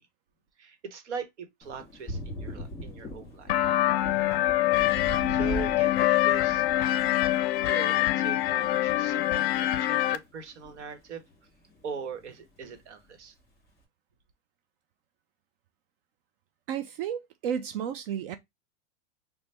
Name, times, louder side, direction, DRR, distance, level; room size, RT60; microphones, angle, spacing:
voice 1, 0.6-3.6 5.3-7.2 7.7-11.2 11.8-13.3, right 6 dB, 80° right, 1.1 m, -41 dB
Thunder, 1.6-11.4 11.7-12.8, equal, 10° left, 1.7 m, -42 dB
sound 1, 3.5-10.2, left 14 dB, 55° left, 0.5 m, -25 dB
voice 2, 16.7-18.4, right 8 dB, 55° right, 0.4 m, -32 dB
3.2 x 2.1 x 4.1 m
hypercardioid pair, 130°, 34 cm